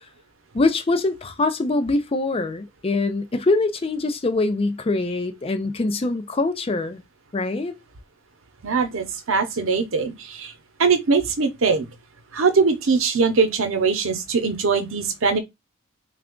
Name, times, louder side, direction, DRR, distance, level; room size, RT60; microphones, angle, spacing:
voice 1, 0.5-7.0 7.3-7.7, left 2 dB, 30° left, 0.4 m, -23 dB
voice 2, 8.6-10.5 10.8-11.8 12.3-15.4, right 4 dB, 85° right, 0.8 m, -21 dB
3.3 x 2.4 x 3.6 m
head